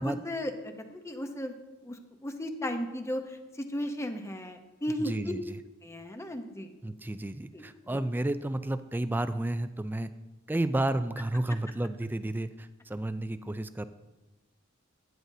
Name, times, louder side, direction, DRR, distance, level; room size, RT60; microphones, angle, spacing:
voice 1, 0.0-1.5 1.8-5.3 5.8-6.7 7.5-7.6 7.9-8.0, left 1 dB, 15° left, 6 dB, 0.7 m, -35 dB
voice 2, 5.0-5.6 6.8-10.1 10.5-13.9, right 1 dB, 10° right, 12 dB, 0.3 m, -31 dB
12.0 x 9.5 x 2.7 m, 1.1 s
head